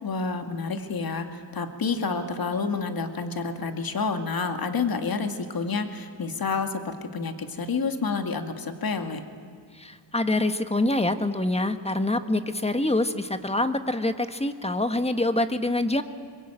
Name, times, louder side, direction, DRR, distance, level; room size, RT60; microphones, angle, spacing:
voice 1, 0.0-9.2, left 4 dB, 55° left, 6 dB, 2.3 m, -29 dB
voice 2, 9.8-16.0, left 2 dB, 15° left, 9 dB, 1.5 m, -25 dB
24.0 x 22.5 x 9.0 m, 2.1 s
cardioid pair, 85°, 43 cm